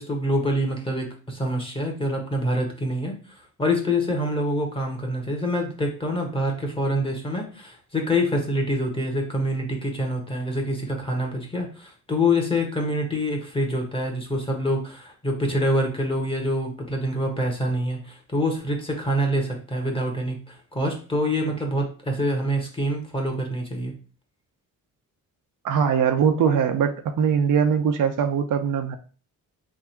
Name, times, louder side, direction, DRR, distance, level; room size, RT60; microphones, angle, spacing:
voice 1, 0.0-3.2 3.6-23.9, equal, 15° left, 1 dB, 1.3 m, -26 dB
voice 2, 25.6-29.0, right 7 dB, 70° right, 7 dB, 0.6 m, -21 dB
3.6 x 2.6 x 4.4 m, 0.39 s
cardioid pair, 105°, 33 cm